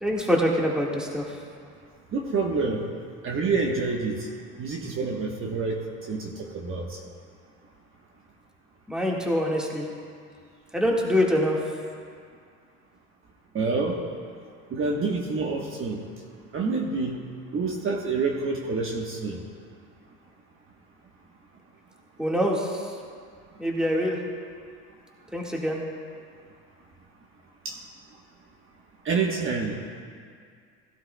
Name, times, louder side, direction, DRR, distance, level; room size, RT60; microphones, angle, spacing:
voice 1, 0.0-1.3 8.9-9.9 10.7-11.6 22.2-22.8 23.6-24.2 25.3-25.8, equal, ahead, -2 dB, 1.7 m, -24 dB
voice 2, 2.1-2.8 3.2-4.3 4.6-5.8 6.1-7.0 13.5-14.0 14.7-16.0 16.5-17.2 17.5-19.4 27.6-27.8 29.0-30.0, right 4 dB, 40° right, 0 dB, 1.2 m, -27 dB
16.5 x 12.0 x 2.3 m, 2.1 s
supercardioid pair, 100°, 33 cm